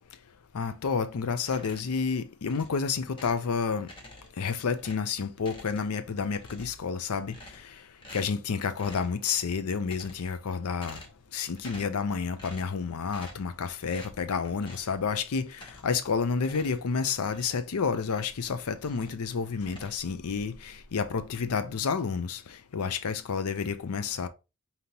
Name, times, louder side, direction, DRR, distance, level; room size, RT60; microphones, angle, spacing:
voice 1, 0.5-3.9 4.4-7.3 8.1-11.0 11.3-22.4 22.7-24.3, left 5 dB, 90° left, 0.5 m, -30 dB
sound 1, 1.4-2.0 2.5-3.5 3.8-4.5 4.8-6.1 6.3-6.9 7.3-7.7 8.0-8.4 8.8-9.2 9.7-10.4 10.7-11.3 11.6-12.0 12.4-12.8 13.1-13.5 13.9-14.2 14.6-14.9 15.5-16.0 16.4-18.4 18.7-19.3 19.6-20.5, left 1 dB, 25° left, 0.8 m, -49 dB
5.2 x 2.9 x 2.8 m
head